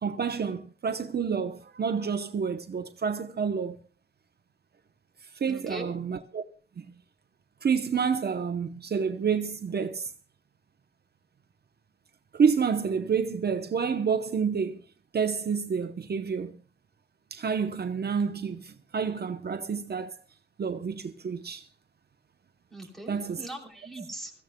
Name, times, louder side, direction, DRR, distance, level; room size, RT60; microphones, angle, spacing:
voice 1, 0.0-3.8 5.4-6.4 6.8-6.9 7.6-10.1 12.3-14.8 15.1-16.5 17.3-20.2 20.6-21.7 23.1-23.4, right 6 dB, 60° right, 0.8 m, -29 dB
voice 2, 5.5-6.0 22.7-24.3, right 1 dB, ahead, 3.1 m, -40 dB
24.5 x 14.5 x 2.2 m
wide cardioid pair, 160°, 19 cm